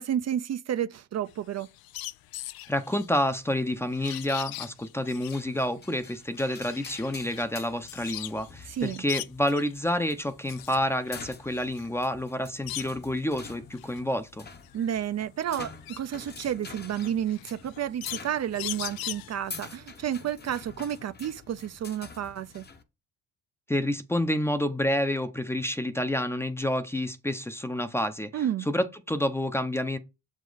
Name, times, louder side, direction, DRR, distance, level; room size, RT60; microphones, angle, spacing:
voice 1, 0.0-1.7 8.7-9.0 14.7-22.6 28.3-28.7, right 10 dB, 45° right, 0.5 m, -31 dB
sound 1, 1.3-8.5 8.8-9.8 10.2-13.2 13.6-19.6, left 16 dB, 80° left, 0.5 m, -41 dB
voice 2, 2.7-14.5 23.7-30.0, left 1 dB, 5° left, 0.7 m, -29 dB
sound 2, 5.3-22.8, left 4 dB, 30° left, 1.0 m, -47 dB
7.3 x 5.1 x 4.0 m
cardioid pair, 105°, 36 cm